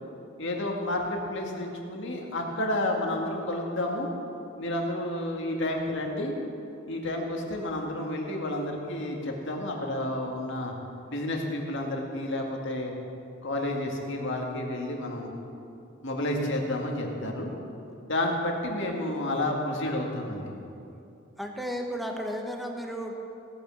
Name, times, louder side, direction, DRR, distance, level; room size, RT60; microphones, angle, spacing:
voice 1, 0.4-4.1 4.6-6.3 6.9-10.7 11.1-12.9 13.4-15.3 16.0-17.5 18.0-20.5, left 1 dB, 60° left, 1 dB, 2.0 m, -30 dB
voice 2, 21.4-23.2, equal, ahead, 2 dB, 1.2 m, -33 dB
17.0 x 9.1 x 6.4 m, 2.7 s
head